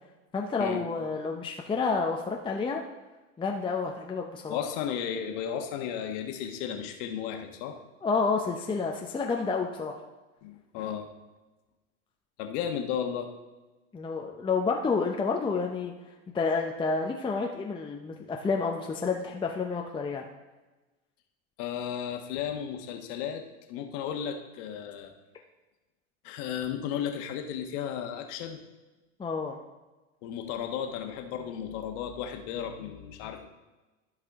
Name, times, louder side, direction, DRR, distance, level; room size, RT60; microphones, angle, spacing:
voice 1, 0.3-2.8 3.4-4.6 8.0-9.9 13.9-15.9 16.3-20.3 29.2-29.6, left 4 dB, 10° left, 1 dB, 0.7 m, -29 dB
voice 2, 4.5-7.8 10.4-11.1 12.4-13.3 21.6-23.4 23.7-25.1 26.2-28.6 30.2-33.5, left 8 dB, 60° left, 5 dB, 1.3 m, -34 dB
13.0 x 4.9 x 3.6 m, 1.2 s
hypercardioid pair, 100°, 40 cm